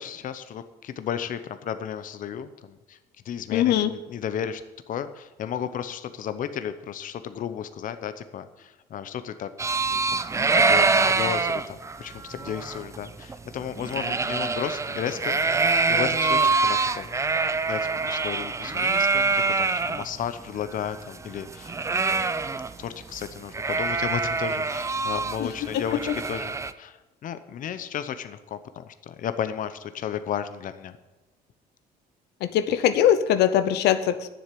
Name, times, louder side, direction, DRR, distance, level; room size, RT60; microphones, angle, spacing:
voice 1, 0.0-3.0 3.2-4.6 4.9-9.5 9.9-10.0 10.5-15.4 15.7-17.1 17.6-22.3 22.8-31.0, left 9 dB, 50° left, 11 dB, 0.8 m, -34 dB
voice 2, 3.5-3.9 25.4-25.5 32.4-34.3, left 10 dB, 80° left, 11 dB, 0.8 m, -21 dB
sound 1, 9.6-20.0 20.4-20.5 20.7-22.9 23.1-23.3 23.5-26.7, right 4 dB, 15° right, 0.5 m, -25 dB
10.0 x 7.4 x 8.4 m, 1.1 s
cardioid pair, 110°, 17 cm